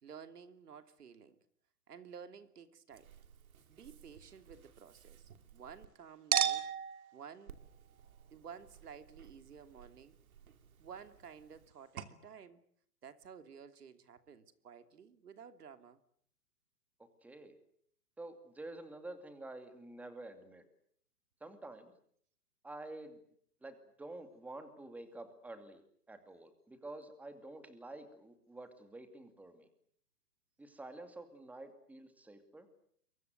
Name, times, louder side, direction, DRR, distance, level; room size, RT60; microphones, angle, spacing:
voice 1, 0.0-1.4 1.9-3.1 3.7-6.7 7.1-7.6 8.3-10.2 10.8-12.6 13.0-16.0, right 7 dB, 85° right, 10 dB, 2.9 m, -53 dB
Chink clink, 2.9-5.9 6.3-11.7 12.0-12.1, right 9 dB, 65° right, 2.9 m, -41 dB
voice 2, 17.2-17.5 18.2-20.6 21.4-21.9 22.6-23.2 23.6-25.8 26.1-29.7 30.6-32.7, right 2 dB, 5° right, 8 dB, 2.5 m, -49 dB
28.0 x 23.5 x 8.0 m, 0.64 s
hypercardioid pair, 155°, 45 cm